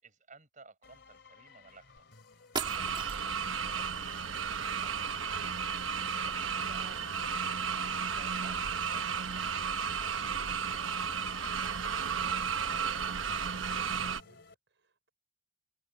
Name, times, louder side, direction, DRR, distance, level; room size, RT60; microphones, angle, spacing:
voice 1, 0.0-4.3 4.5-13.3, right 3 dB, 40° right, 5.7 m, -59 dB
sound 1, 0.8-14.5, left 4 dB, 60° left, 3.2 m, -57 dB
sound 2, 2.0-2.1 2.5-3.5, right 5 dB, 25° right, 1.5 m, -38 dB
sound 3, 2.6-14.2, right 6 dB, 85° right, 1.1 m, -33 dB
voice 2, 13.9-15.1, right 2 dB, 65° right, 5.5 m, -64 dB
head